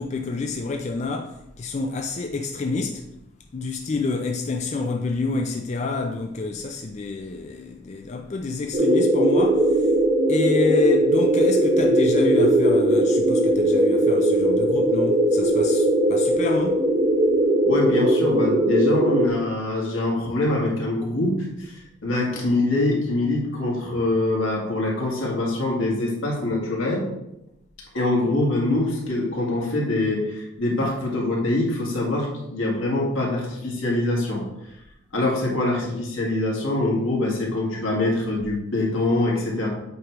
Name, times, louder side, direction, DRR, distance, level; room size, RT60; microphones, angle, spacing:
voice 1, 0.0-3.1 3.5-9.9 10.3-16.8, left 3 dB, 35° left, 0.3 m, -28 dB
sound 1, 8.7-19.3, right 1 dB, 35° right, 0.7 m, -19 dB
voice 2, 17.6-27.0 27.9-34.4 35.1-39.7, left 2 dB, 80° left, 2.0 m, -24 dB
8.0 x 3.0 x 4.6 m
head